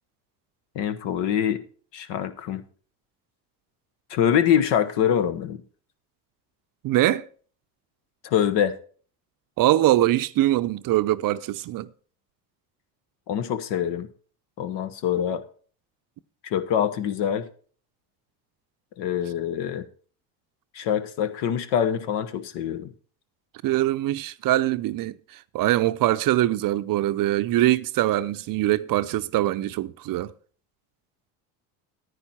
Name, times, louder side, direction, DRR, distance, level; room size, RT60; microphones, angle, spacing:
voice 1, 0.7-1.6 1.9-2.6 4.1-5.6 8.2-8.7 13.3-14.1 14.6-15.4 16.4-17.5 19.0-19.9 20.7-22.9, left 9 dB, 65° left, 1.2 m, -24 dB
voice 2, 6.8-7.3 9.6-11.9 23.6-25.2 25.5-30.3, right 15 dB, 50° right, 0.6 m, -23 dB
10.0 x 9.5 x 4.3 m
supercardioid pair, 85°, 45 cm